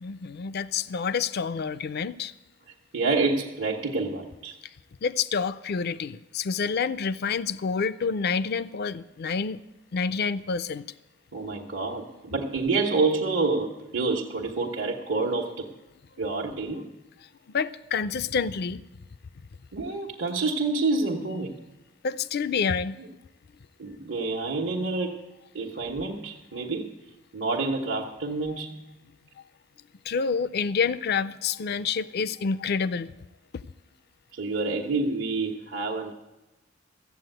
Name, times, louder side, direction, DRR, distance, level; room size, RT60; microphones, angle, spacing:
voice 1, 0.0-2.3 5.0-9.6 9.9-10.9 17.5-18.8 22.0-23.0 30.1-33.1, left 5 dB, 55° left, 0.4 m, -28 dB
voice 2, 2.9-4.5 11.3-15.7 16.2-16.9 19.7-21.6 23.8-25.2 25.5-26.9 27.3-28.7 34.3-36.1, right 3 dB, 80° right, 1.2 m, -28 dB
14.0 x 8.2 x 7.9 m
head